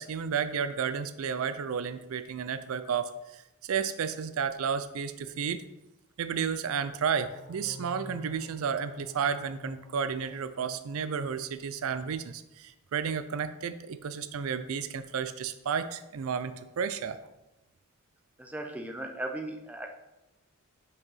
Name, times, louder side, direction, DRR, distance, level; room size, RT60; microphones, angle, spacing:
voice 1, 0.0-5.6 6.2-17.2, right 6 dB, 70° right, 11 dB, 0.4 m, -32 dB
sound 1, 7.2-11.8, left 2 dB, 75° left, 0.8 m, -49 dB
voice 2, 18.4-19.9, right 1 dB, 5° right, 3 dB, 0.6 m, -37 dB
5.3 x 4.7 x 5.5 m, 0.95 s
head